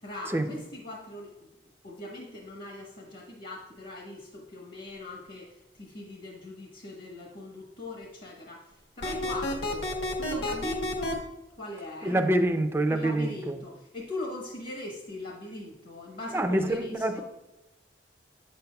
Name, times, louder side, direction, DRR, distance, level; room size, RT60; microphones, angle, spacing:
voice 1, 0.0-1.5 1.8-11.3 11.6-12.3 12.9-17.2, left 2 dB, 50° left, -1 dB, 1.0 m, -40 dB
sound 1, 9.0-11.1, left 1 dB, 70° left, 1.2 m, -30 dB
voice 2, 12.0-13.5 16.3-17.2, right 1 dB, 15° right, 6 dB, 0.4 m, -26 dB
8.5 x 6.8 x 2.3 m, 1.0 s
head